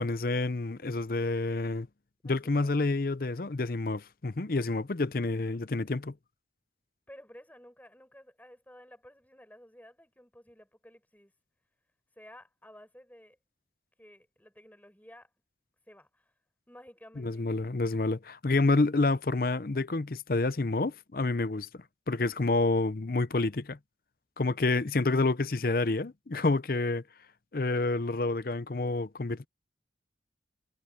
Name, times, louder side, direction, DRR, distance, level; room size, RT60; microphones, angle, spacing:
voice 1, 0.0-1.9 2.2-6.1 17.2-21.7 22.1-23.8 24.4-27.0 27.5-29.5, left 3 dB, 50° left, 0.6 m, -28 dB
voice 2, 2.2-2.8 7.1-11.3 12.2-13.4 14.0-15.3 15.9-16.3 16.7-17.4, equal, 10° left, 7.8 m, -53 dB
head